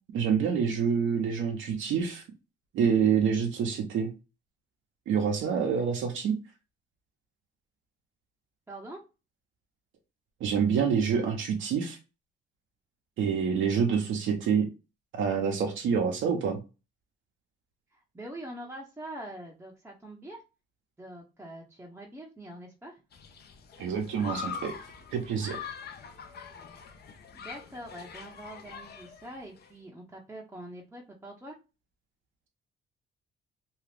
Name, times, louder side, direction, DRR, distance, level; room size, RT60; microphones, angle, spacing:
voice 1, 0.1-2.2 2.7-4.1 5.1-6.4 10.4-12.0 13.2-14.7 15.1-16.6 23.8-24.7 25.1-25.6, right 6 dB, 80° right, 2 dB, 0.7 m, -27 dB
voice 2, 8.7-9.0 17.9-20.4 21.0-23.0 27.3-31.6, right 1 dB, 10° right, -2 dB, 0.6 m, -44 dB
Human group actions, 23.1-29.7, left 6 dB, 55° left, 0.6 m, -43 dB
2.7 x 2.4 x 3.3 m, 0.29 s
cardioid pair, 90°, 20 cm